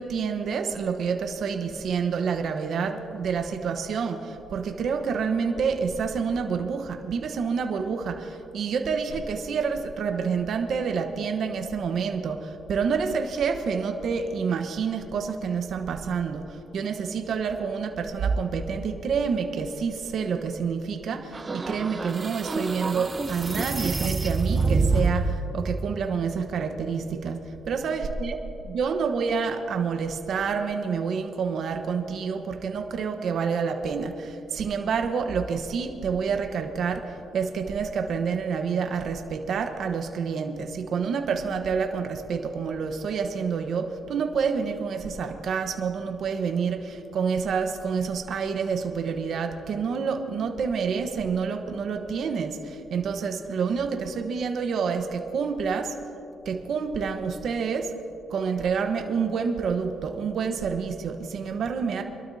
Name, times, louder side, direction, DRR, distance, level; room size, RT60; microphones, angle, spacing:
voice 1, 0.0-27.4 27.7-28.4 28.6-56.0 56.4-57.9 58.3-62.0, right 5 dB, 65° right, 5 dB, 1.2 m, -28 dB
sound 1, 21.3-25.4, right 3 dB, 30° right, 0.9 m, -26 dB
25.5 x 12.5 x 2.8 m, 2.8 s
cardioid pair, 90°, 0 cm